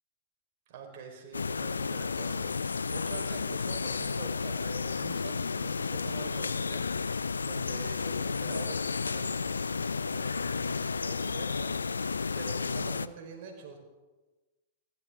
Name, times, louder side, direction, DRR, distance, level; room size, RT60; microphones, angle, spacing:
voice 1, 0.7-2.5 2.9-11.7 12.3-13.8, right 5 dB, 50° right, 2 dB, 4.5 m, -46 dB
sound 1, 1.3-13.1, left 5 dB, 75° left, 0.5 m, -32 dB
29.0 x 13.0 x 3.8 m, 1.2 s
figure-of-eight pair, 100°, 0 cm